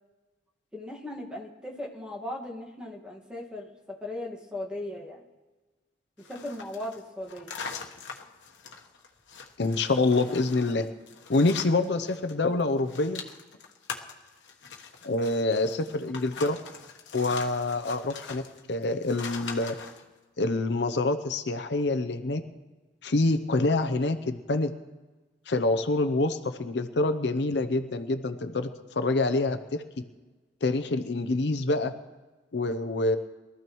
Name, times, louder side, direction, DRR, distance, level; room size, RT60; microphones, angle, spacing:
voice 1, 0.7-3.7 4.0-5.2 6.3-7.5, left 1 dB, 5° right, -1 dB, 1.8 m, -37 dB
sound 1, 6.2-12.3 12.6-20.0, left 5 dB, 80° left, 1.2 m, -42 dB
voice 2, 9.6-10.9 11.3-13.2 15.0-16.6 17.1-18.4 18.7-19.8 20.4-22.4 23.0-24.7 25.5-29.8 30.6-31.9 32.5-33.2, left 2 dB, 65° left, 9 dB, 0.7 m, -26 dB
23.0 x 13.5 x 3.1 m, 1.2 s
head